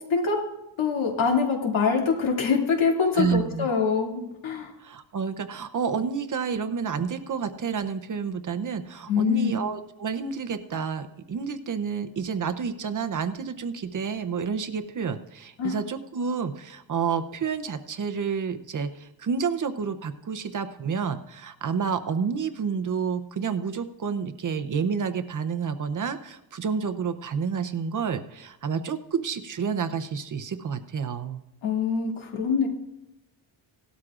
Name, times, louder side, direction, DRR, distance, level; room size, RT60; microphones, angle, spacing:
voice 1, 0.1-0.4 0.8-4.7 9.1-9.5 15.6-15.8 31.6-32.7, left 5 dB, 85° left, 0 dB, 2.6 m, -24 dB
voice 2, 3.1-3.7 4.8-31.4, right 6 dB, 40° right, 9 dB, 0.7 m, -29 dB
18.0 x 12.5 x 2.5 m, 0.94 s
wide cardioid pair, 160°, 46 cm